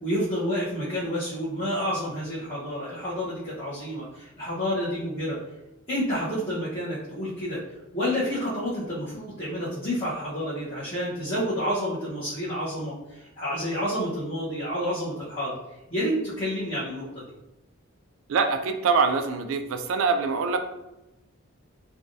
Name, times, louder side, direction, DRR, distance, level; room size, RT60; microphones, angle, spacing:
voice 1, 0.0-5.4 5.9-7.6 7.9-15.6 15.9-17.2, equal, 25° left, -12 dB, 0.9 m, -29 dB
voice 2, 18.3-20.6, right 5 dB, 75° right, 7 dB, 0.3 m, -24 dB
3.4 x 2.3 x 2.6 m, 0.95 s
head